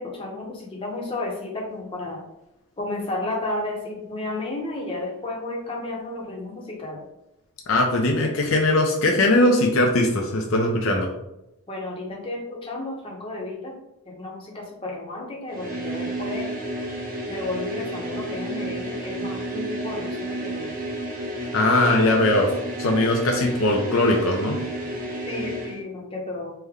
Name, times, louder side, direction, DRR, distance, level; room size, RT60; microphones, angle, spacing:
voice 1, 0.0-2.3 2.8-7.1 11.7-13.8 14.0-16.5 17.3-20.7 25.2-26.5, left 2 dB, 25° left, -2 dB, 0.7 m, -32 dB
voice 2, 7.7-11.1 21.5-22.5 22.8-24.6, left 1 dB, 65° left, 1 dB, 0.5 m, -20 dB
sound 1, 15.5-25.8, right 1 dB, 40° right, 0.6 m, -31 dB
3.4 x 2.1 x 3.5 m, 0.87 s
head